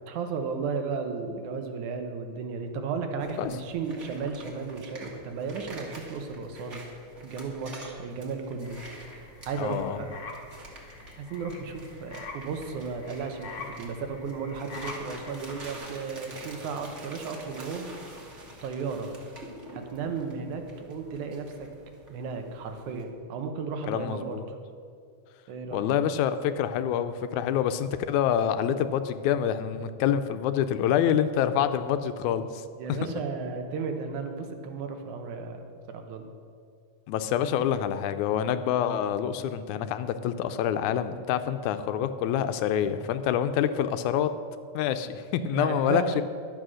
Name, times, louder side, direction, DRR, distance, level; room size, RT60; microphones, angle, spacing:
voice 1, 0.1-6.9 7.2-8.8 9.1-10.2 11.2-18.0 18.2-18.3 18.6-19.1 19.7-21.7 22.1-24.6 25.5-25.9 32.8-36.3 45.5-46.2, right 5 dB, 85° right, 5 dB, 2.4 m, -34 dB
sound 1, 3.2-23.0, right 1 dB, 30° right, 1.4 m, -47 dB
sound 2, 8.6-15.7, left 3 dB, 55° left, 1.8 m, -45 dB
voice 2, 9.6-10.0 23.9-24.4 25.7-32.6 37.1-44.3 44.7-46.2, left 9 dB, 90° left, 10 dB, 2.1 m, -26 dB
11.5 x 8.1 x 6.3 m, 2.3 s
omnidirectional pair, 3.3 m